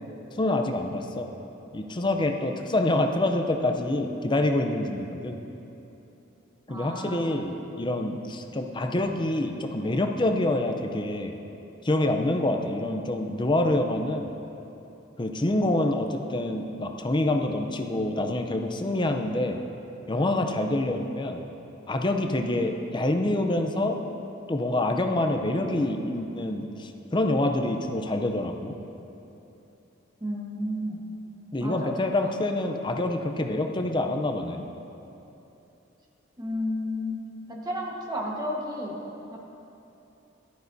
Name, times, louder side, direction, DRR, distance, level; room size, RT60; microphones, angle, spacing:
voice 1, 0.3-1.3 1.7-5.4 6.7-11.3 11.8-14.3 15.2-19.6 20.1-21.4 21.9-24.0 24.5-28.8 31.5-34.6, left 1 dB, 25° left, 4 dB, 0.5 m, -26 dB
voice 2, 6.7-7.2 30.2-31.0 31.6-31.9 32.2-32.3 36.4-37.2 37.5-39.0 39.3-39.4, left 1 dB, 20° right, -3 dB, 1.3 m, -32 dB
14.0 x 11.5 x 2.7 m, 3.0 s
head